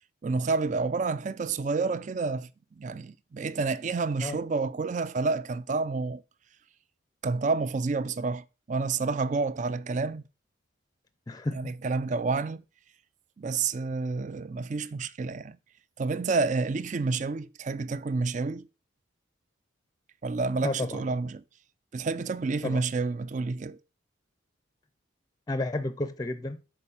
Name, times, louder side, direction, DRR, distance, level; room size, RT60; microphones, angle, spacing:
voice 1, 0.2-2.5 2.8-6.2 7.2-10.2 11.5-12.6 13.4-15.6 16.0-18.7 20.2-21.4 21.9-23.8, right 4 dB, 35° right, 0.3 m, -29 dB
voice 2, 11.3-11.7 20.6-21.1 22.6-22.8 25.5-26.6, left 2 dB, 20° left, 0.5 m, -32 dB
6.7 x 4.5 x 5.5 m
head